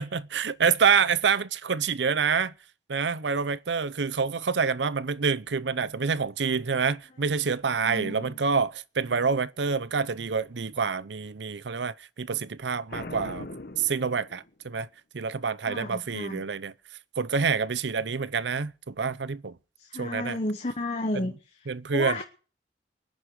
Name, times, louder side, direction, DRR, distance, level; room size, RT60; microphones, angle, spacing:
voice 1, 0.0-2.5 2.9-13.5 13.8-14.9 15.1-16.7 17.2-19.5 20.0-20.4 21.7-22.2, right 5 dB, 85° right, 0.7 m, -27 dB
voice 2, 7.8-8.4 15.6-16.4 19.8-22.2, left 2 dB, 40° left, 1.2 m, -33 dB
Boom, 12.9-14.7, left 2 dB, 60° left, 1.0 m, -40 dB
23.0 x 10.0 x 4.7 m
head